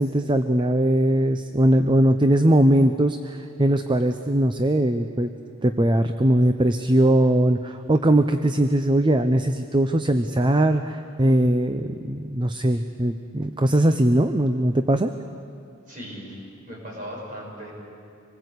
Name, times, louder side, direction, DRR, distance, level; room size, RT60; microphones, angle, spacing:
voice 1, 0.0-5.3 5.6-15.1, right 1 dB, 25° right, 8 dB, 0.6 m, -20 dB
voice 2, 15.9-16.4 16.7-17.7, equal, 40° right, -3 dB, 7.4 m, -37 dB
26.5 x 19.5 x 8.2 m, 2.5 s
head